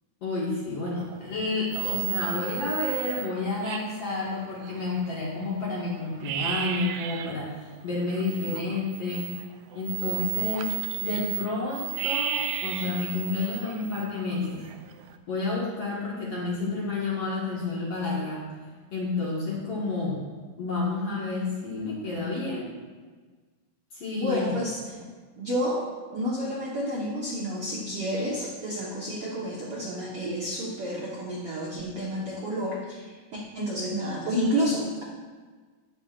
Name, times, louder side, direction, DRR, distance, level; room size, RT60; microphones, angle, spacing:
voice 1, 0.2-9.3 9.7-14.6 15.3-18.4 18.9-20.2 20.6-22.7 23.9-24.5, left 3 dB, 50° left, -6 dB, 2.0 m, -30 dB
sound 1, 1.0-1.4 1.7-5.2 5.6-5.7 6.0-7.4 7.8-15.2, right 12 dB, 85° right, 1.9 m, -34 dB
voice 2, 24.2-25.0 25.4-35.0, equal, 70° right, -4 dB, 1.3 m, -30 dB
12.5 x 9.1 x 2.5 m, 1.4 s
omnidirectional pair, 4.6 m